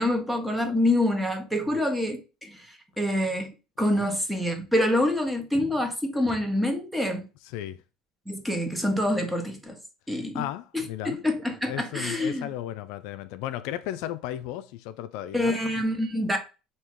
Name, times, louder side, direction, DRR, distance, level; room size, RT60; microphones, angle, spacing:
voice 1, 0.0-3.5 3.8-7.3 8.3-9.8 10.1-10.5 10.7-12.5 15.3-16.4, left 1 dB, 5° right, 1.0 m, -26 dB
voice 2, 10.3-11.2 11.7-15.6, left 13 dB, 75° left, 0.3 m, -35 dB
3.5 x 2.7 x 4.4 m
supercardioid pair, 90°, 0 cm